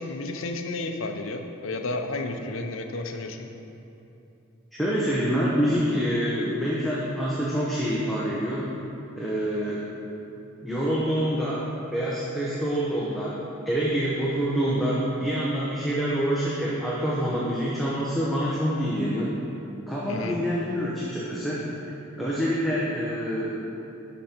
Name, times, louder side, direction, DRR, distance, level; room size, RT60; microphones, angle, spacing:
voice 1, 0.0-3.5 20.1-20.4, left 2 dB, 70° left, 5 dB, 0.7 m, -32 dB
voice 2, 4.7-8.8 9.2-9.9 10.6-13.4 13.7-19.3 19.9-21.6 22.1-23.6, equal, ahead, -8 dB, 0.9 m, -26 dB
11.5 x 5.2 x 4.4 m, 2.8 s
head